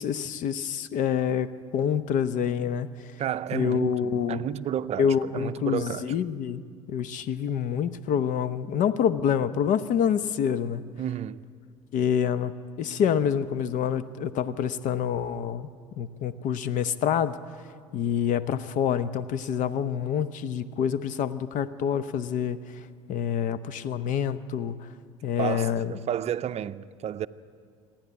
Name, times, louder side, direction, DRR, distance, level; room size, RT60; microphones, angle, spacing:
voice 1, 0.0-2.9 3.5-4.4 5.0-6.6 6.9-10.8 11.9-15.7 16.0-17.4 17.9-22.6 23.1-24.9 25.2-25.9, left 8 dB, 55° left, 0.9 m, -27 dB
voice 2, 3.2-6.2 11.0-11.4 25.4-27.3, right 10 dB, 45° right, 0.5 m, -31 dB
26.5 x 10.5 x 9.5 m
hypercardioid pair, 70°, 15 cm